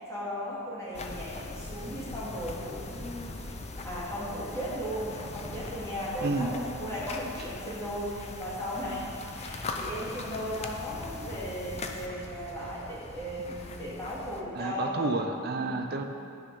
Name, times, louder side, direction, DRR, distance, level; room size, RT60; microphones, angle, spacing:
voice 1, 0.0-3.5 3.7-15.1 15.5-15.8, equal, 15° left, -9 dB, 2.6 m, -36 dB
sound 1, 0.9-14.4, left 2 dB, 30° left, 0.5 m, -40 dB
voice 2, 6.2-6.5 14.5-16.0, right 3 dB, 45° right, 5 dB, 0.5 m, -30 dB
11.5 x 6.6 x 4.9 m, 2.5 s
head